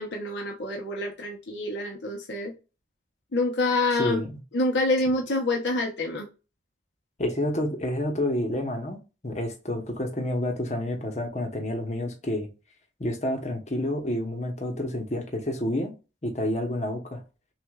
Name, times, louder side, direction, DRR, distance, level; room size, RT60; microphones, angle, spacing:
voice 1, 0.0-2.5 3.3-4.2 4.5-6.3, left 2 dB, 85° left, 0.9 m, -27 dB
voice 2, 3.9-4.3 7.2-9.0 9.2-12.5 13.0-15.9 16.2-17.2, left 1 dB, 40° left, 1.0 m, -29 dB
6.0 x 2.5 x 2.4 m
head